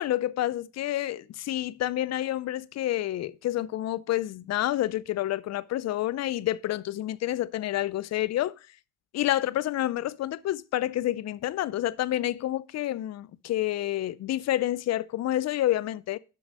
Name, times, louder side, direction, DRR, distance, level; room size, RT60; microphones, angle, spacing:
voice 1, 0.0-8.5 9.1-16.2, left 14 dB, 60° left, 0.5 m, -29 dB
7.7 x 6.1 x 5.3 m
cardioid pair, 90°, 30 cm